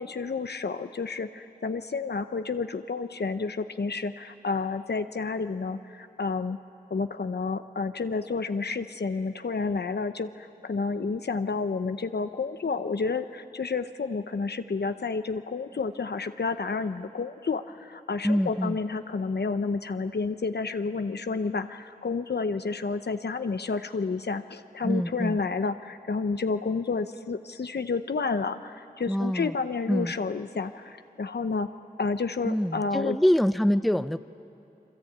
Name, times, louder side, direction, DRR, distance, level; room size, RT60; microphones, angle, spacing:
voice 1, 0.0-6.6 6.9-31.7 32.0-33.2, left 4 dB, 85° left, 9 dB, 0.7 m, -30 dB
voice 2, 18.2-18.8 24.8-25.4 29.1-29.5 29.9-30.1 32.4-34.2, equal, ahead, 13 dB, 0.5 m, -25 dB
29.0 x 23.5 x 8.7 m, 2.8 s
wide cardioid pair, 55°, 17 cm